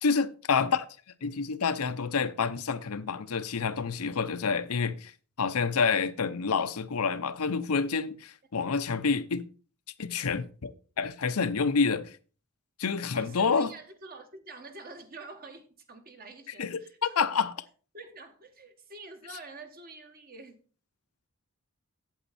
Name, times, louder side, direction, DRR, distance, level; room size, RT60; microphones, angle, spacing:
voice 1, 0.0-0.9 1.2-5.1 5.4-9.5 10.0-10.7 11.0-12.1 12.8-13.7 16.6-17.5, left 5 dB, 90° left, 0.7 m, -28 dB
voice 2, 13.1-17.3 17.9-20.6, right 3 dB, 40° right, 1.5 m, -47 dB
8.3 x 8.1 x 4.2 m
head